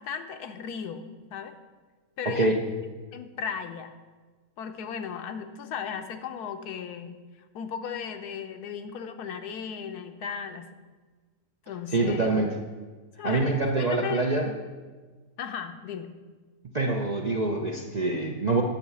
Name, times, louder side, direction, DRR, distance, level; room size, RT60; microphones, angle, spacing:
voice 1, 0.0-1.5 2.2-2.8 3.1-4.0 4.6-7.2 7.5-10.7 11.7-12.4 13.2-14.3 15.4-16.1, left 7 dB, 80° left, 7 dB, 1.3 m, -36 dB
voice 2, 2.2-2.6 11.9-12.5 13.2-14.5 16.7-18.6, right 2 dB, 45° right, 0 dB, 0.5 m, -25 dB
10.5 x 5.7 x 6.9 m, 1.4 s
omnidirectional pair, 1.7 m